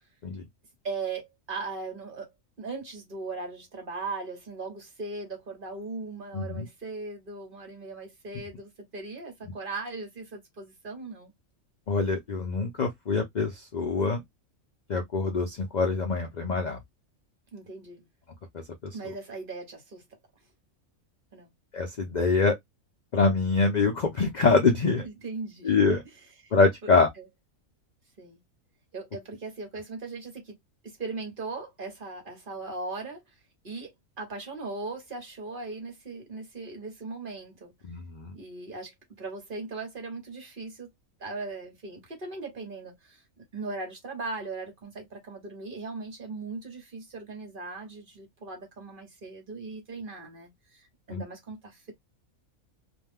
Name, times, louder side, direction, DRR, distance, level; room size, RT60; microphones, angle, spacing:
voice 1, 0.8-2.3 2.6-11.3 17.5-18.0 18.9-20.0 21.3-21.5 25.0-25.7 26.4-26.5 28.2-28.4 28.9-30.6 30.8-33.2 33.6-37.7 38.3-40.9 41.2-43.2 43.5-51.9, right 3 dB, 40° right, 1.1 m, -38 dB
voice 2, 6.3-6.7 11.9-14.2 14.9-16.8 18.8-18.9 21.7-22.6 23.1-25.1 25.6-26.0 26.5-27.1 37.8-38.3 51.1-51.2, left 4 dB, 65° left, 0.4 m, -25 dB
2.5 x 2.2 x 3.4 m
omnidirectional pair, 1.5 m